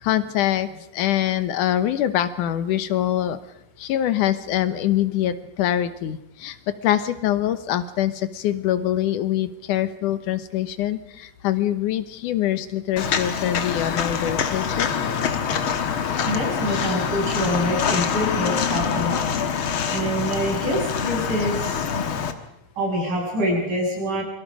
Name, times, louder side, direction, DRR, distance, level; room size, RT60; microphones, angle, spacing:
voice 1, 0.0-3.4 3.8-14.9, left 12 dB, 85° left, 12 dB, 2.6 m, -24 dB
Walk footsteps, 13.0-22.3, left 7 dB, 50° left, 1.9 m, -25 dB
voice 2, 16.3-22.0 22.8-24.2, equal, 90° right, -2 dB, 9.0 m, -26 dB
27.5 x 23.0 x 5.1 m, 0.82 s
omnidirectional pair, 3.5 m